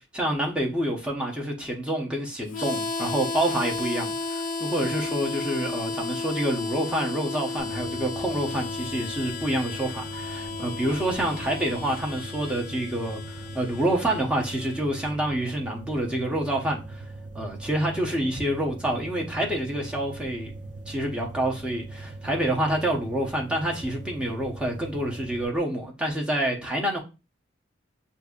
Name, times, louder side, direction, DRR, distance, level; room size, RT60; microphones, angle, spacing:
voice 1, 0.1-17.0 17.3-20.5 20.9-27.0, right 1 dB, 5° right, 0.9 m, -27 dB
Harmonica, 2.5-15.1, left 3 dB, 45° left, 0.4 m, -33 dB
sound 1, 7.6-25.4, right 2 dB, 40° right, 0.7 m, -40 dB
6.5 x 2.7 x 2.4 m
head